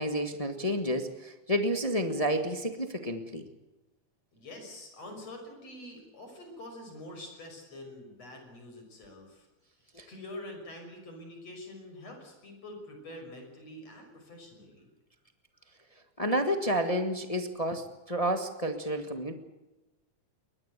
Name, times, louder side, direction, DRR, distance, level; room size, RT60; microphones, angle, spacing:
voice 1, 0.0-3.4 9.9-10.1 16.2-19.3, equal, 20° left, 6 dB, 0.9 m, -30 dB
voice 2, 4.3-9.5 10.1-14.9, left 1 dB, 55° left, 4 dB, 7.1 m, -46 dB
23.0 x 19.5 x 8.2 m, 1.0 s
omnidirectional pair, 3.5 m